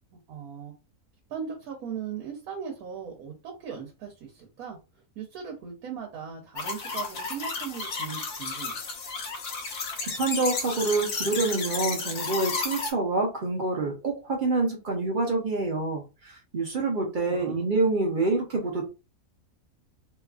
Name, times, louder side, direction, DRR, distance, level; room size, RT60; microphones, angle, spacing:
voice 1, 0.3-0.7 1.3-4.8 5.2-8.8 17.2-17.7, right 7 dB, 85° right, 1.2 m, -38 dB
sound 1, 6.6-12.9, left 4 dB, 60° left, 1.0 m, -32 dB
voice 2, 10.0-18.8, right 3 dB, 55° right, 0.5 m, -27 dB
2.8 x 2.4 x 2.3 m
omnidirectional pair, 1.5 m